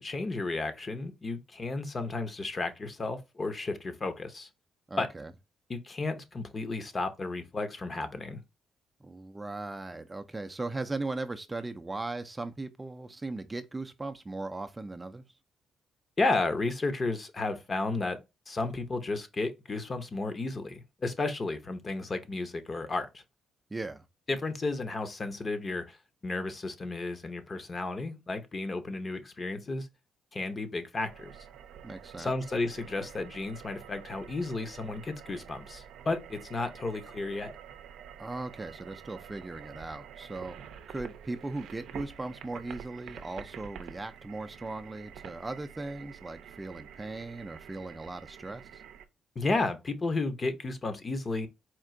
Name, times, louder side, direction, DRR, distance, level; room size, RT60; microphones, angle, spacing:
voice 1, 0.0-4.5 5.0-5.1 5.7-8.4 16.2-18.2 18.5-23.2 24.3-26.0 26.2-29.9 30.3-31.3 32.2-37.5 49.4-51.5, left 3 dB, 35° left, 0.8 m, -33 dB
voice 2, 4.9-5.3 9.0-15.2 23.7-24.0 31.8-32.3 38.2-40.6 40.9-48.8, right 2 dB, 20° right, 0.4 m, -38 dB
sound 1, 31.0-49.0, right 8 dB, 80° right, 0.5 m, -48 dB
4.4 x 2.4 x 3.7 m
cardioid pair, 90°, 0 cm